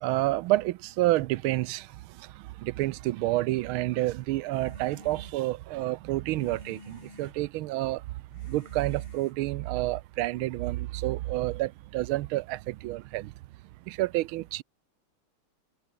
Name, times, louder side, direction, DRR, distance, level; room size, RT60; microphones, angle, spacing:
voice 1, 0.0-1.9 2.6-8.0 8.5-13.3 13.9-14.6, right 17 dB, 75° right, 1.4 m, -29 dB
sound 1, 4.5-10.0, left 2 dB, 80° left, 8.4 m, -52 dB
omnidirectional pair, 2.4 m